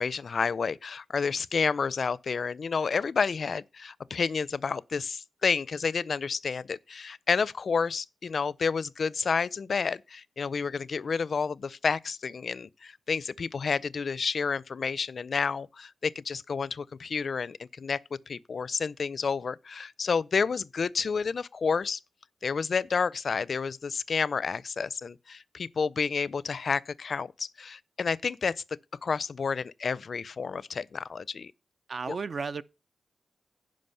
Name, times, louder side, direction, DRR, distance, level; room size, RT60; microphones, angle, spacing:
voice 1, 0.0-18.0 18.3-22.0 22.4-28.6 29.0-31.5 32.1-32.2, left 5 dB, 60° left, 0.4 m, -30 dB
voice 2, 31.9-32.6, right 5 dB, 55° right, 0.5 m, -33 dB
10.5 x 5.2 x 5.6 m
wide cardioid pair, 85°, 0 cm